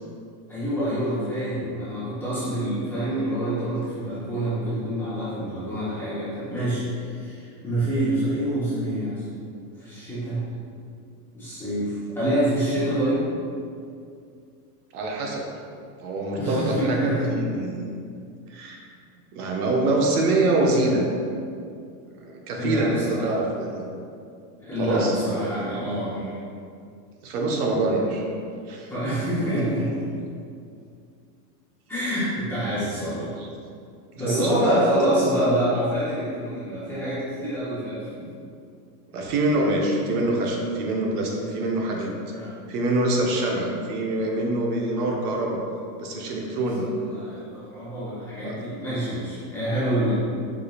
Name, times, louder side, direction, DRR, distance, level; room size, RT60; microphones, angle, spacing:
voice 1, 0.5-9.2 9.8-10.4 11.3-13.2 16.4-17.3 22.6-23.5 24.6-26.3 28.9-29.9 31.9-33.3 34.2-38.3 41.4-41.7 42.3-42.6 46.5-50.2, right 1 dB, 5° left, -14 dB, 0.7 m, -26 dB
voice 2, 14.9-15.4 16.0-17.9 18.5-18.8 19.3-21.0 22.1-23.9 24.8-25.1 27.2-28.2 28.7-28.9 33.4-33.5 34.3-34.8 39.1-42.1 42.7-45.6 46.0-46.9 48.4-48.5, right 2 dB, 70° right, -1 dB, 0.8 m, -25 dB
4.9 x 2.7 x 2.4 m, 2.4 s
supercardioid pair, 165°, 48 cm